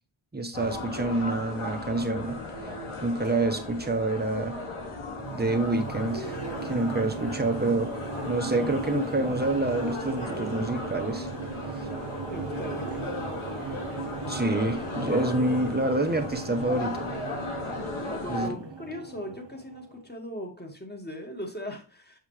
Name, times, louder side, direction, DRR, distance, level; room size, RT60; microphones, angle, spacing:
voice 1, 0.3-2.4 3.0-4.6 5.3-6.4 6.6-7.9 8.3-11.3 14.3-17.1 18.3-18.5, right 2 dB, 20° right, 1.2 m, -27 dB
sound 1, 0.5-18.5, left 2 dB, 75° left, 2.2 m, -36 dB
sound 2, 4.8-20.2, right 7 dB, 60° right, 0.8 m, -38 dB
voice 2, 12.3-13.1 18.1-22.2, equal, 20° left, 2.1 m, -39 dB
7.2 x 5.6 x 3.3 m
wide cardioid pair, 70°, 50 cm